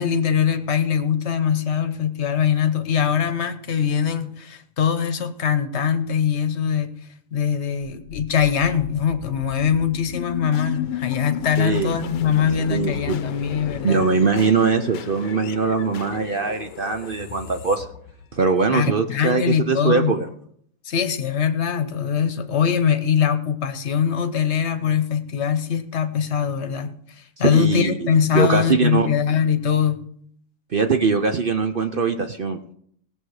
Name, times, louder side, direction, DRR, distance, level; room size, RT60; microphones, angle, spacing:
voice 1, 0.0-7.0 7.3-14.0 18.7-20.2 20.8-30.0, left 8 dB, 45° left, 9 dB, 1.1 m, -22 dB
sound 1, 8.1-18.9, left 10 dB, 80° left, 1.4 m, -34 dB
voice 2, 11.6-12.0 12.7-13.2 13.8-17.8 18.3-20.3 27.4-29.1 30.7-32.7, right 4 dB, 60° right, 7 dB, 0.5 m, -21 dB
18.0 x 7.2 x 4.8 m, 0.65 s
omnidirectional pair, 1.8 m